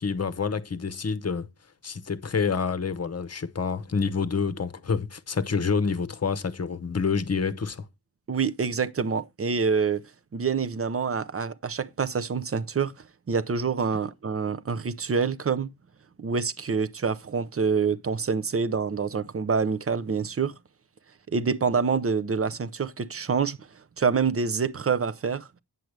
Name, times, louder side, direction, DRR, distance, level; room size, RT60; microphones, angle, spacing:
voice 1, 0.0-1.5 1.8-7.9, left 5 dB, 40° left, 0.9 m, -28 dB
voice 2, 8.3-10.0 10.3-12.9 13.3-15.7 16.2-20.5 21.3-23.6 24.0-25.5, right 5 dB, 35° right, 0.6 m, -26 dB
9.2 x 7.7 x 3.3 m
wide cardioid pair, 100°, 39 cm